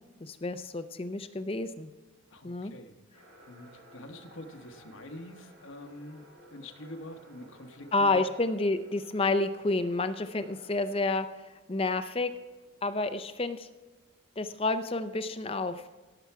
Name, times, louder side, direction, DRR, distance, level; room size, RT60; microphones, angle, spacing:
voice 1, 0.2-1.9 2.4-2.7 7.9-11.3 11.7-12.3 12.8-13.7 14.4-15.8, left 2 dB, 30° left, 10 dB, 0.5 m, -29 dB
voice 2, 2.3-2.9 3.2-8.2, left 1 dB, 75° left, 6 dB, 1.1 m, -46 dB
sound 1, 3.1-11.0, right 1 dB, 85° right, 3.4 m, -55 dB
17.0 x 7.0 x 4.6 m, 1.2 s
head